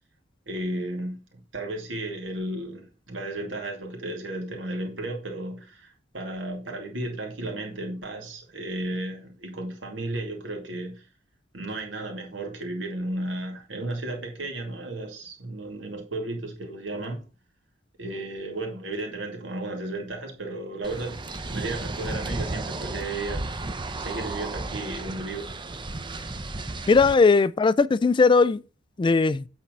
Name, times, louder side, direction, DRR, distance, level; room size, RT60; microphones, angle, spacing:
voice 1, 0.5-11.0 11.5-17.2 18.0-23.5 24.0-25.5, right 2 dB, 75° right, 2.5 m, -34 dB
sound 1, 20.8-27.1, right 2 dB, 25° right, 0.7 m, -34 dB
voice 2, 26.9-28.6 29.0-29.4, left 4 dB, 25° left, 0.3 m, -18 dB
8.4 x 4.3 x 5.3 m
head